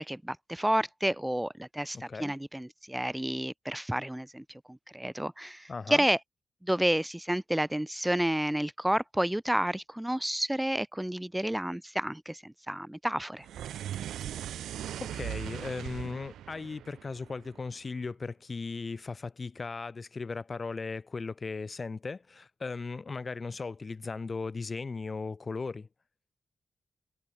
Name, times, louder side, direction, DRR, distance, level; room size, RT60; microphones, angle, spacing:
voice 1, 0.0-6.2 6.6-13.5, right 1 dB, 10° right, 0.5 m, -30 dB
voice 2, 1.9-2.3 5.7-6.0 15.0-25.9, left 4 dB, 50° left, 0.9 m, -37 dB
sound 1, 13.4-17.8, right 11 dB, 90° right, 0.7 m, -39 dB
supercardioid pair, 40°, 0 cm